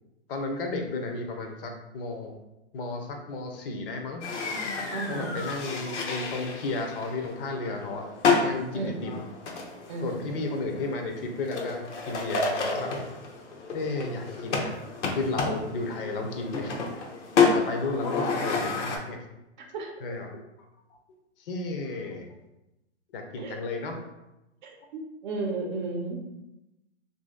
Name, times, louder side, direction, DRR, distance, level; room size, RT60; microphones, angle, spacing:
voice 1, 0.3-2.3 2.7-4.2 5.1-8.1 8.4-9.2 10.0-13.0 13.7-14.7 15.1-17.1 17.5-19.2 20.0-20.3 20.9-22.3 23.1-24.0, left 3 dB, 50° left, 3 dB, 0.7 m, -33 dB
sound 1, 4.2-19.0, left 4 dB, 85° left, 0.8 m, -30 dB
voice 2, 4.9-5.3 8.7-9.0 9.9-10.4 19.7-19.9 23.4-23.6 24.6-26.2, right 3 dB, 40° right, 1 dB, 0.6 m, -33 dB
2.7 x 2.7 x 3.7 m, 0.94 s
hypercardioid pair, 150°, 35 cm